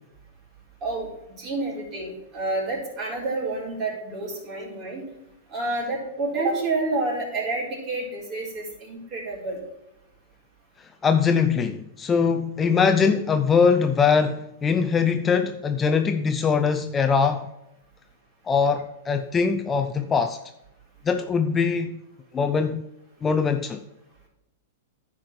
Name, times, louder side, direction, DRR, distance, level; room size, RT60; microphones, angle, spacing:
voice 1, 0.8-5.0 5.5-9.6, right 2 dB, 35° right, 4.2 m, -29 dB
voice 2, 11.0-17.5 18.5-20.4 21.0-22.0 22.3-22.8 23.2-23.8, left 5 dB, 20° left, 0.5 m, -22 dB
10.5 x 4.8 x 6.1 m
hypercardioid pair, 130°, 0 cm